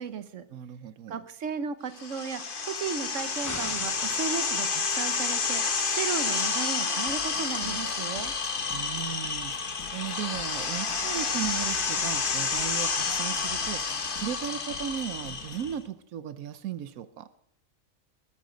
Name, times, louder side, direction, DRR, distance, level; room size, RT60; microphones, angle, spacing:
voice 1, 0.0-0.5 1.1-2.4 2.7-8.3, right 6 dB, 65° right, 12 dB, 1.4 m, -35 dB
voice 2, 0.5-1.3 8.7-13.8 14.2-17.3, right 9 dB, 90° right, 13 dB, 1.2 m, -36 dB
sound 1, 2.0-15.7, left 4 dB, 40° left, 1.3 m, -30 dB
sound 2, 3.4-5.0, left 2 dB, 20° left, 0.5 m, -41 dB
sound 3, 7.1-15.8, left 5 dB, 90° left, 1.9 m, -48 dB
20.0 x 13.0 x 5.2 m, 0.75 s
omnidirectional pair, 1.4 m